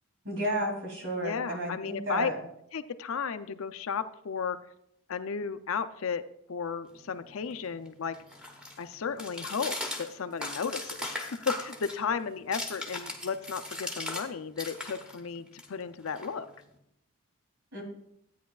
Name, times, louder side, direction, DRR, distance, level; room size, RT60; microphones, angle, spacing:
voice 1, 0.2-2.4 17.7-17.8, right 1 dB, 65° right, 0 dB, 2.8 m, -32 dB
voice 2, 1.2-2.3 2.7-4.6 5.1-6.2 6.5-8.2 8.8-16.5, left 6 dB, 65° left, 11 dB, 0.5 m, -34 dB
sound 1, 6.9-14.3 14.5-16.8, left 1 dB, 5° right, 1.1 m, -39 dB
13.5 x 9.2 x 2.3 m, 0.76 s
head